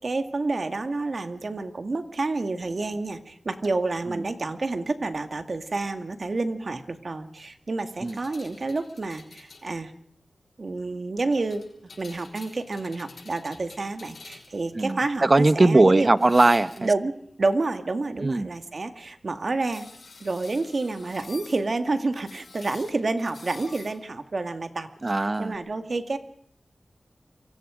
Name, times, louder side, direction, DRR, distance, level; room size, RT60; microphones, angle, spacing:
voice 1, 0.0-9.9 10.6-11.6 12.0-16.1 16.8-19.8 20.2-24.9 25.4-26.2, right 3 dB, 55° right, 8 dB, 2.1 m, -29 dB
sound 1, 7.9-9.7 11.5-14.7 16.2-17.1 19.7-21.6 22.1-24.0 25.5-25.6, left 4 dB, 90° left, 5.7 m, -47 dB
voice 2, 14.8-16.9 18.2-18.5 25.0-25.6, right 2 dB, 35° right, 14 dB, 1.0 m, -20 dB
28.5 x 24.0 x 5.1 m, 0.67 s
wide cardioid pair, 85°, 0 cm